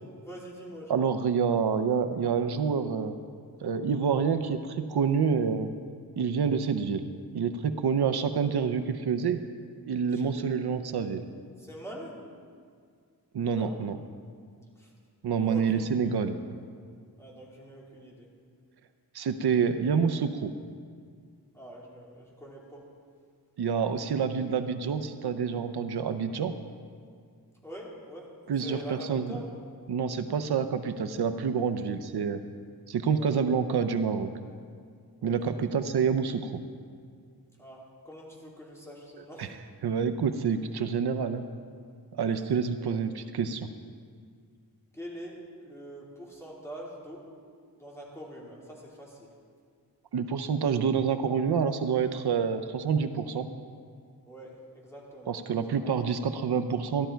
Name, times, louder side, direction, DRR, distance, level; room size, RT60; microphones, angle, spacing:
voice 1, 0.2-1.0 10.1-10.3 11.6-12.1 13.5-13.7 14.8-14.9 15.4-16.1 17.2-18.3 21.5-22.8 27.6-28.3 28.6-29.4 33.2-33.3 35.2-35.8 37.6-39.5 42.4-43.0 44.9-47.2 47.8-49.3 54.3-55.4 55.7-56.0, equal, 5° left, -5 dB, 3.0 m, -44 dB
voice 2, 0.9-3.2 3.6-5.7 6.2-7.1 7.3-9.4 9.9-11.2 13.3-14.0 15.2-16.4 19.1-20.5 23.6-26.5 28.5-29.4 29.9-32.4 32.9-34.3 35.2-36.5 39.2-39.6 39.8-41.4 42.1-43.7 50.1-53.5 55.3-57.1, right 6 dB, 75° right, 9 dB, 0.7 m, -27 dB
14.0 x 12.5 x 4.5 m, 2.2 s
wide cardioid pair, 125°, 39 cm